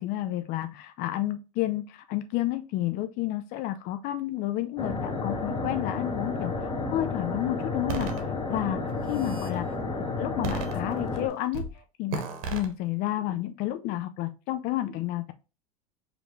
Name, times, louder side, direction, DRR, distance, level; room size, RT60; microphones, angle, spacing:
voice 1, 0.0-9.7 10.2-11.7 12.0-12.2 12.5-15.3, left 14 dB, 50° left, 9 dB, 0.4 m, -31 dB
sound 1, 4.8-11.3, left 3 dB, 25° left, 0.9 m, -31 dB
sound 2, 7.9-8.2 8.9-9.5 10.4-11.2 11.5-11.7 12.1-12.7, right 5 dB, 70° right, 1.0 m, -34 dB
5.0 x 2.4 x 3.1 m, 0.31 s
hypercardioid pair, 90°, 18 cm